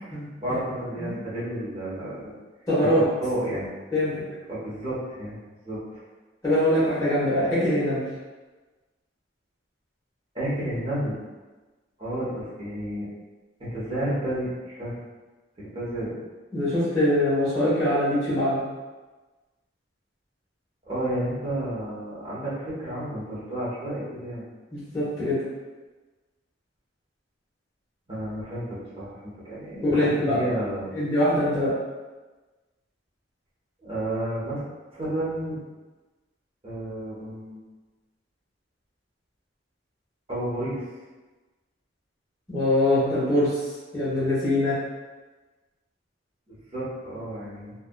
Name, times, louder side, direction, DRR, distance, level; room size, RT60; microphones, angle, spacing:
voice 1, 0.0-2.3 2.8-3.7 4.1-4.2 4.5-6.0 10.3-11.2 12.0-13.1 13.6-15.0 15.6-16.2 20.9-24.5 28.1-30.9 33.8-34.6 34.9-35.6 36.6-37.6 40.3-40.8 46.5-47.7, right 1 dB, 30° right, -9 dB, 0.9 m, -31 dB
voice 2, 2.7-3.0 3.9-4.1 6.4-8.0 16.5-18.6 24.7-25.4 29.7-30.5 30.9-31.7 42.5-43.6 43.9-44.8, left 1 dB, 20° left, -11 dB, 1.0 m, -23 dB
2.6 x 2.4 x 2.2 m, 1.2 s
head